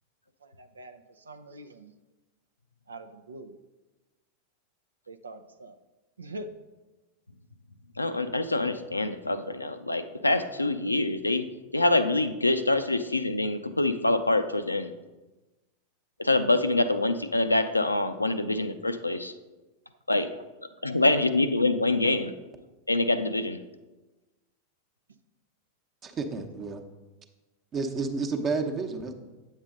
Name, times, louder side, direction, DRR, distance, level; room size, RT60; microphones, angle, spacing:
voice 1, 0.4-1.9 2.9-3.6 5.1-5.8 6.2-6.5, right 1 dB, 75° right, 9 dB, 0.5 m, -44 dB
voice 2, 8.0-11.4 11.7-14.9 16.2-19.3 20.1-20.3 20.8-22.3 22.9-23.6, left 2 dB, 85° left, 10 dB, 0.5 m, -25 dB
voice 3, 26.0-26.8 27.7-29.1, right 4 dB, 25° right, 5 dB, 0.9 m, -30 dB
8.7 x 7.3 x 3.8 m, 1.1 s
figure-of-eight pair, 90°, 0 cm